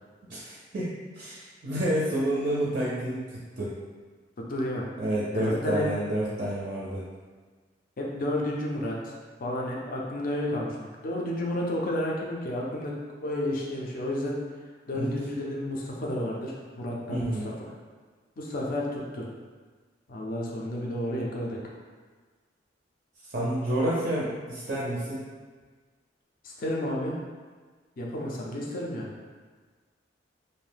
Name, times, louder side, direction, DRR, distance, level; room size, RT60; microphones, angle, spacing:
voice 1, 0.3-3.7 5.0-7.1 14.9-15.1 17.1-17.5 23.3-25.2, right 1 dB, 45° right, -6 dB, 0.4 m, -29 dB
voice 2, 4.5-4.9 5.3-5.9 8.0-12.9 13.2-14.4 14.9-17.5 18.4-19.3 20.1-21.6 26.4-27.2 28.0-29.1, left 1 dB, 50° left, -2 dB, 0.5 m, -31 dB
2.6 x 2.1 x 3.3 m, 1.4 s
head